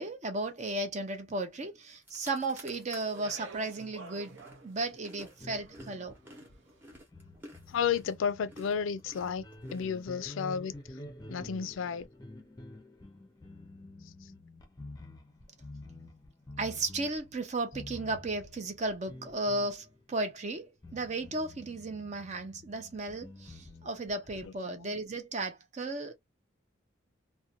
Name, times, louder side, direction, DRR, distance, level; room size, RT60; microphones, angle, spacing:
voice 1, 0.0-6.1 16.6-26.1, right 2 dB, 35° right, 0.5 m, -35 dB
sound 1, 1.6-1.7 1.9-3.2 3.7-10.4, equal, 10° right, 0.8 m, -53 dB
Speech, 2.4-6.8, right 4 dB, 75° right, 0.7 m, -51 dB
sound 2, 5.3-20.3 20.8-24.5, left 1 dB, 20° left, 0.5 m, -49 dB
voice 2, 7.7-9.5 9.7-11.0 11.3-12.1 14.2-14.3 24.4-24.9, left 7 dB, 75° left, 0.4 m, -33 dB
2.5 x 2.1 x 2.7 m
head